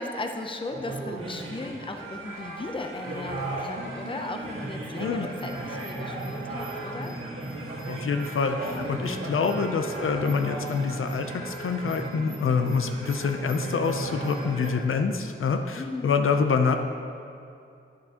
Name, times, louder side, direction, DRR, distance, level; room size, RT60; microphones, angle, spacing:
voice 1, 0.0-7.2 8.7-9.0 12.6-12.8 15.8-16.2, left 2 dB, 25° left, 4 dB, 0.5 m, -36 dB
sound 1, 0.7-14.7, right 2 dB, 85° right, 1.6 m, -35 dB
voice 2, 7.9-16.8, left 5 dB, 75° left, 6 dB, 0.5 m, -26 dB
10.5 x 6.6 x 2.9 m, 2.5 s
wide cardioid pair, 105°, 21 cm